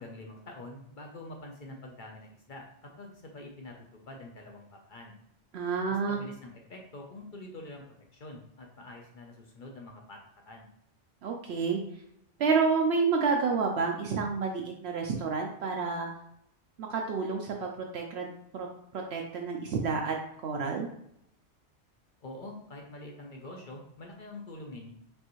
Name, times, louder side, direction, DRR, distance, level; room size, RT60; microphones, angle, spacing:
voice 1, 0.0-3.7 4.1-5.2 5.9-7.8 8.1-10.2 10.5-10.7 22.2-24.9, left 2 dB, 50° left, 1 dB, 0.7 m, -45 dB
voice 2, 5.5-6.2 11.2-11.8 12.4-16.1 16.8-18.3 18.5-18.7 18.9-20.2 20.4-20.9, right 5 dB, 70° right, 1 dB, 0.8 m, -29 dB
5.3 x 2.6 x 3.0 m, 0.77 s
omnidirectional pair, 1.2 m